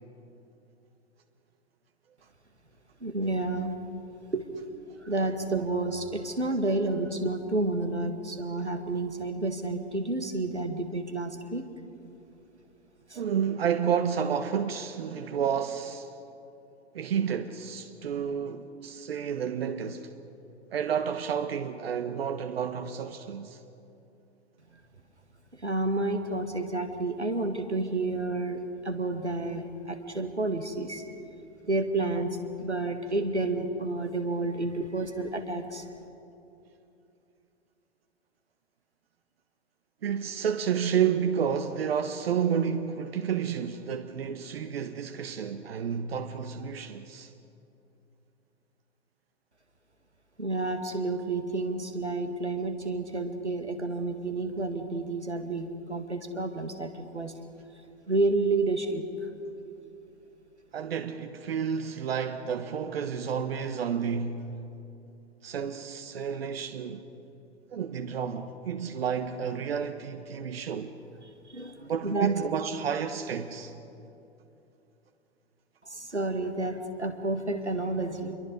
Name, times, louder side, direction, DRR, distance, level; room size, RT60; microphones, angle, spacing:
voice 1, 3.0-3.8 4.3-4.5 5.0-11.7 12.4-12.5 13.1-13.2 24.7-24.8 25.5-31.1 31.6-35.9 50.4-57.3 58.1-59.3 71.5-72.4 75.8-78.3, right 2 dB, 90° right, 2.0 m, -30 dB
voice 2, 13.1-16.1 16.9-20.1 20.7-23.6 40.0-47.3 60.7-64.5 65.4-67.1 67.7-71.0 71.8-73.7, right 7 dB, 60° right, 1.2 m, -30 dB
28.0 x 22.5 x 5.3 m
figure-of-eight pair, 100°, 33 cm